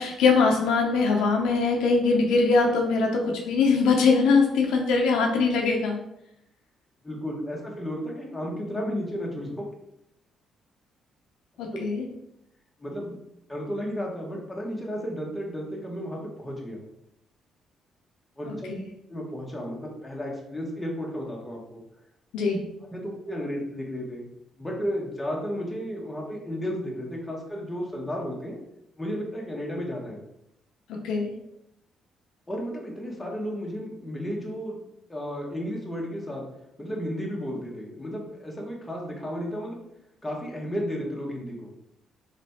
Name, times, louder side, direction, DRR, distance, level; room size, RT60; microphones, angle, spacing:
voice 1, 0.0-6.0 11.6-12.0 18.7-18.8 22.3-22.6 30.9-31.3, left 4 dB, 90° left, 1 dB, 0.7 m, -22 dB
voice 2, 7.0-9.6 12.8-13.2 13.5-16.8 18.4-18.7 19.1-21.8 22.9-24.2 24.6-28.6 29.0-30.2 32.5-34.8 35.1-36.4 36.8-39.8 40.2-41.7, equal, 10° left, -2 dB, 1.3 m, -33 dB
3.3 x 3.2 x 4.2 m, 0.81 s
cardioid pair, 90°, 0 cm